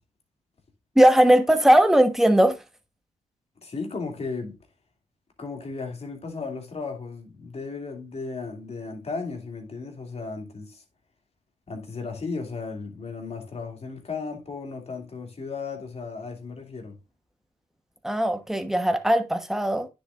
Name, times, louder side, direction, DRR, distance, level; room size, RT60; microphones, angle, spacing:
voice 1, 1.0-2.6 18.0-19.9, right 1 dB, ahead, 1.1 m, -19 dB
voice 2, 3.6-4.6 5.4-10.8 11.7-17.0, left 4 dB, 40° left, 2.6 m, -35 dB
9.7 x 7.3 x 2.5 m
cardioid pair, 75°, 16 cm